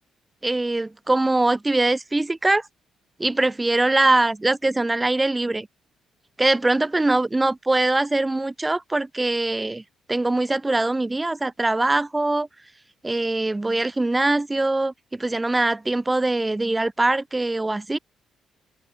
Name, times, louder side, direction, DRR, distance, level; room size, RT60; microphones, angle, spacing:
voice 1, 0.4-2.7 3.2-5.7 6.4-9.8 10.1-12.5 13.0-18.0, right 2 dB, 15° right, 0.5 m, -22 dB
cardioid pair, 90°, 0 cm